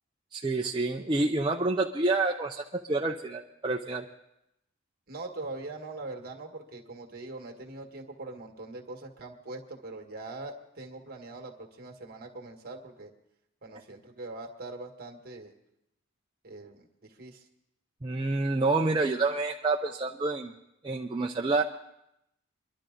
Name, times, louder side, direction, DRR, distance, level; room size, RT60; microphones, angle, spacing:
voice 1, 0.3-4.1 18.0-20.5 20.8-21.6, right 3 dB, 20° right, 0 dB, 0.5 m, -28 dB
voice 2, 5.1-13.1 13.6-15.5 16.4-17.5, right 2 dB, 45° right, 2 dB, 1.7 m, -42 dB
24.5 x 11.5 x 3.8 m, 0.84 s
head